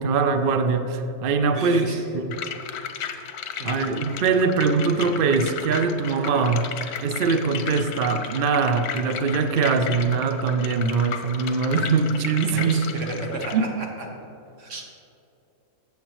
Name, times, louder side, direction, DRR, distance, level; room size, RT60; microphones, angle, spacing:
voice 1, 0.0-1.9 2.1-2.3 3.6-6.7 7.0-12.8 13.5-13.6, right 5 dB, 80° right, 8 dB, 0.4 m, -22 dB
voice 2, 1.5-2.0 3.6-4.1 12.5-13.9 14.6-14.8, right 2 dB, 55° right, 0 dB, 1.6 m, -32 dB
sound 1, 2.3-13.5, left 8 dB, 90° left, 1.2 m, -34 dB
14.0 x 7.3 x 3.0 m, 2.8 s
omnidirectional pair, 1.6 m